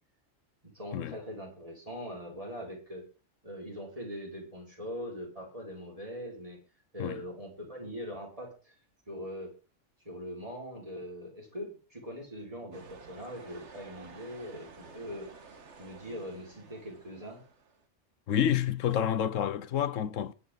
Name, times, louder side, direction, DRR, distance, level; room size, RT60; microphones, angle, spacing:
voice 1, 0.6-3.0 3.4-6.6 6.9-8.7 9.1-9.5 10.0-15.3 15.8-17.4, equal, 30° right, 5.8 m, -42 dB
sound 1, 12.7-17.8, right 4 dB, 65° right, 1.7 m, -52 dB
voice 2, 18.3-20.3, left 9 dB, 90° left, 1.2 m, -29 dB
22.0 x 9.3 x 3.9 m
omnidirectional pair, 1.3 m